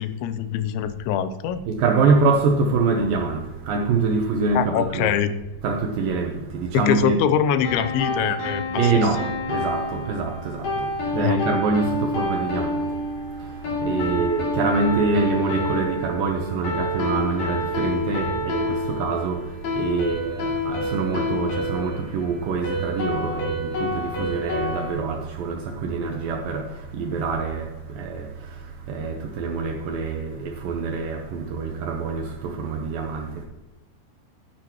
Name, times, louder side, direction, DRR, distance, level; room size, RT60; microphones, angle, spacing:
voice 1, 0.0-1.6 4.5-5.3 6.9-8.9 11.1-11.4, left 9 dB, 90° left, 3.0 m, -23 dB
voice 2, 1.7-5.1 5.6-7.2 8.8-9.2 9.5-10.7 11.1-12.7 13.9-19.4 19.8-26.6 26.9-27.7 28.0-28.2 28.9-33.3, right 4 dB, 80° right, 2.1 m, -25 dB
sound 1, 7.6-24.9, left 1 dB, 55° left, 4.1 m, -28 dB
11.5 x 10.5 x 3.0 m
omnidirectional pair, 5.2 m